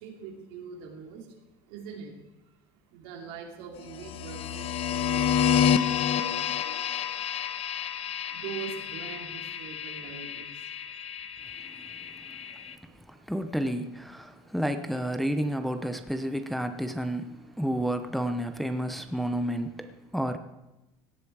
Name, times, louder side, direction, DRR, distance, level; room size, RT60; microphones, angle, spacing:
voice 1, 0.0-1.2 1.7-2.1 2.9-5.5 6.0-6.2 6.5-7.0 8.3-10.5, right 6 dB, 85° right, 3.1 m, -42 dB
sound 1, 3.9-12.7, left 8 dB, 50° left, 0.8 m, -29 dB
voice 2, 12.2-12.5 12.8-20.4, equal, ahead, 0.6 m, -31 dB
17.0 x 11.0 x 4.8 m
cardioid pair, 150°, 13 cm